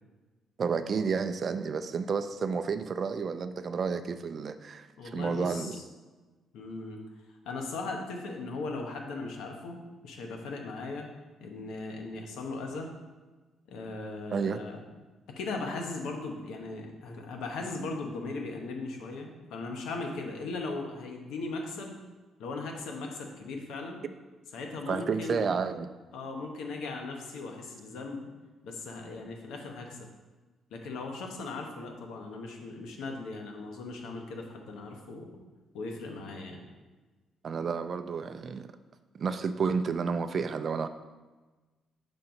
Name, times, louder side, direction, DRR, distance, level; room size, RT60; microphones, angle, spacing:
voice 1, 0.6-4.9 5.1-5.8 14.3-14.6 24.9-25.9 37.4-38.7 39.1-40.9, right 5 dB, 50° right, 10 dB, 0.4 m, -31 dB
voice 2, 5.0-5.8 6.5-7.0 7.4-9.8 10.0-11.1 11.4-12.9 13.7-14.8 15.3-22.0 22.4-24.0 24.5-25.5 26.1-28.3 28.6-30.0 30.7-35.4 35.7-36.7, left 3 dB, 85° left, 2 dB, 1.0 m, -38 dB
5.3 x 3.8 x 5.8 m, 1.2 s
cardioid pair, 90°, 0 cm